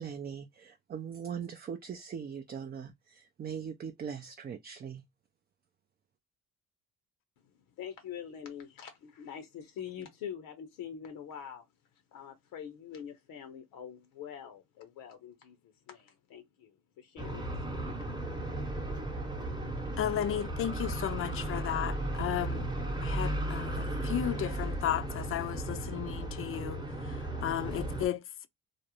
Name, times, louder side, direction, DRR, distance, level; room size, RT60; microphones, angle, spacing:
voice 1, 0.0-5.0, right 7 dB, 30° right, 0.4 m, -40 dB
voice 2, 7.8-11.6 12.1-15.6 15.9-17.9, left 8 dB, 75° left, 0.7 m, -45 dB
sound 1, 17.2-28.1, right 1 dB, 10° right, 0.8 m, -35 dB
voice 3, 20.0-22.7 23.0-28.2, left 11 dB, 40° left, 0.4 m, -34 dB
2.4 x 2.0 x 2.8 m
supercardioid pair, 80°, 35 cm